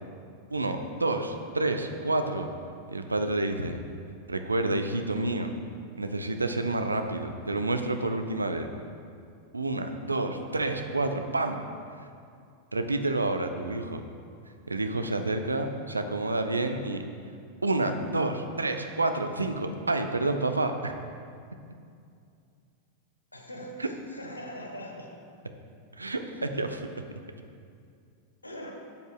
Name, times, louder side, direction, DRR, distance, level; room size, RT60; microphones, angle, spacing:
voice 1, 0.5-2.5 2.9-3.8 4.3-5.5 6.0-8.7 9.5-11.6 12.7-14.0 14.7-17.0 17.6-20.9 23.8-23.9 26.0-26.8, right 2 dB, 80° right, 6 dB, 0.5 m, -29 dB
voice 2, 23.3-25.1 28.4-28.8, equal, 85° left, 2 dB, 1.0 m, -41 dB
12.0 x 8.0 x 2.2 m, 2.4 s
figure-of-eight pair, 90°, 0 cm